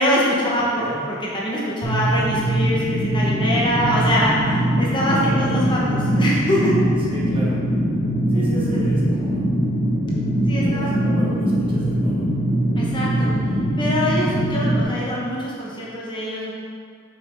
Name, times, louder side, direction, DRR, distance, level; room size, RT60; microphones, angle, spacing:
voice 1, 0.0-6.7 8.3-8.8 10.5-11.0 12.8-16.5, equal, 25° left, -5 dB, 1.0 m, -24 dB
voice 2, 0.7-1.1 5.2-5.7 7.1-7.6 8.3-9.4 10.6-12.3, equal, 25° right, -6 dB, 1.5 m, -33 dB
sound 1, 1.8-14.8, right 1 dB, 85° left, 1.8 m, -21 dB
6.6 x 5.6 x 4.0 m, 2.2 s
head